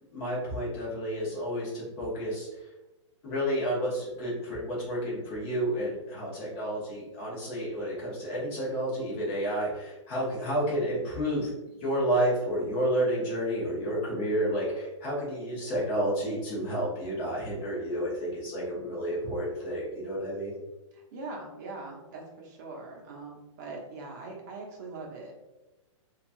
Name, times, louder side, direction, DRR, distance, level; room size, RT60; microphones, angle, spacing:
voice 1, 0.1-2.5 3.2-11.5 11.8-20.5, equal, 25° left, -5 dB, 0.9 m, -30 dB
voice 2, 20.9-25.3, right 3 dB, 35° right, -1 dB, 0.7 m, -42 dB
2.8 x 2.3 x 2.6 m, 1.0 s
hypercardioid pair, 165°, 17 cm